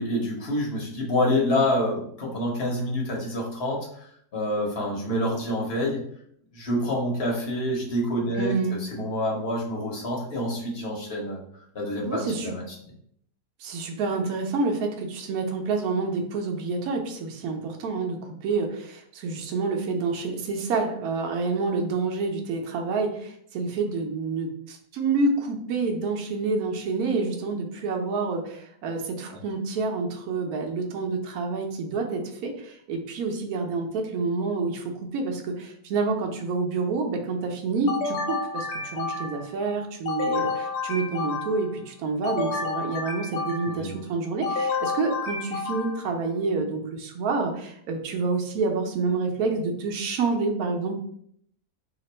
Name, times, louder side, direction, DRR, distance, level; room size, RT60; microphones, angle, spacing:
voice 1, 0.0-6.0 6.5-8.5 8.9-11.4 11.7-12.6 43.6-44.0, left 1 dB, 45° left, -2 dB, 1.0 m, -27 dB
voice 2, 8.3-8.8 12.1-12.5 13.6-51.0, right 4 dB, 70° right, 3 dB, 1.1 m, -28 dB
sound 1, 37.9-39.5 40.1-41.8 42.2-43.9 44.4-46.1, left 4 dB, 70° left, 1.0 m, -30 dB
2.9 x 2.5 x 4.1 m, 0.66 s
omnidirectional pair, 1.7 m